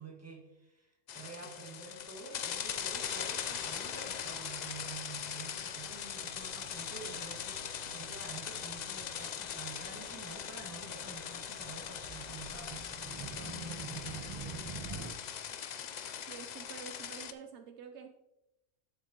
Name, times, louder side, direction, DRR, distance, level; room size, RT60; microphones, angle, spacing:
voice 1, 0.0-14.2, right 4 dB, 15° right, 0 dB, 1.5 m, -49 dB
sound 1, 1.1-17.3, left 8 dB, 65° left, 0.4 m, -41 dB
sound 2, 2.7-15.1, right 4 dB, 30° right, 0.6 m, -49 dB
Bowed string instrument, 5.7-10.5, right 7 dB, 85° right, 1.5 m, -60 dB
voice 2, 16.3-18.1, right 6 dB, 70° right, 6 dB, 0.9 m, -48 dB
12.0 x 5.2 x 2.9 m, 0.91 s
omnidirectional pair, 1.2 m